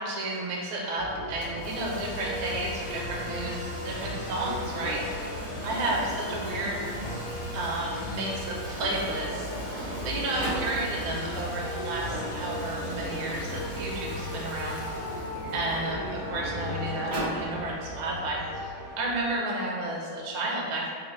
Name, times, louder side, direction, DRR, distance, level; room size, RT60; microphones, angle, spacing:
voice 1, 0.0-6.8 7.5-20.9, right 2 dB, 85° right, -2 dB, 1.5 m, -32 dB
sound 1, 1.0-19.3, left 1 dB, 10° left, 0.8 m, -37 dB
Domestic sounds home sounds, 1.4-16.9, equal, 55° left, 1.2 m, -41 dB
Sliding door, 4.6-7.5 8.5-8.6 8.8-10.7 11.8-14.3 15.1-17.4, right 1 dB, 50° right, 0.8 m, -39 dB
4.1 x 2.6 x 3.0 m, 2.1 s
omnidirectional pair, 2.3 m